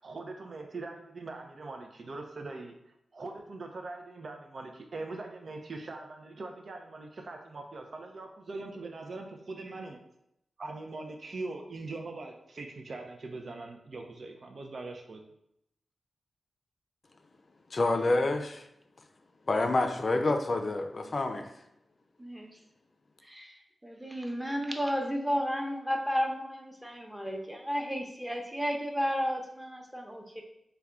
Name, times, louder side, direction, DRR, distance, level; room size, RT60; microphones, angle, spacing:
voice 1, 0.0-2.7 3.1-10.0 10.6-15.2, right 3 dB, 65° right, 4 dB, 0.4 m, -41 dB
voice 2, 17.7-18.6 19.5-21.5, left 2 dB, 55° left, 6 dB, 0.4 m, -28 dB
voice 3, 22.2-22.6 23.3-23.5 23.8-30.4, equal, 10° right, 2 dB, 0.8 m, -33 dB
3.5 x 2.2 x 3.5 m, 0.80 s
cardioid pair, 45°, 0 cm